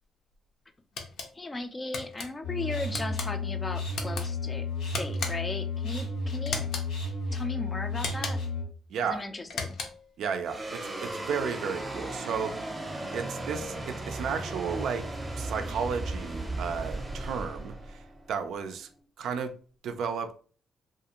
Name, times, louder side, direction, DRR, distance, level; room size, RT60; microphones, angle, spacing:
sound 1, 1.0-1.3 1.9-2.3 2.9-3.3 3.9-4.3 4.9-5.6 6.5-6.9 8.0-8.5 9.4-10.1, left 4 dB, 70° left, 0.5 m, -36 dB
voice 1, 1.3-4.7 5.0-6.7 7.3-8.4 9.0-9.8, left 2 dB, 20° left, 0.4 m, -37 dB
sound 2, 2.4-8.6, left 3 dB, 90° left, 1.1 m, -32 dB
voice 2, 8.9-9.2 10.2-12.5 13.1-15.1 15.4-18.9 19.2-19.5 19.8-20.4, right 6 dB, 75° right, 0.3 m, -33 dB
sound 3, 10.4-19.0, right 2 dB, 20° right, 0.7 m, -36 dB
2.5 x 2.4 x 2.8 m
cardioid pair, 90°, 0 cm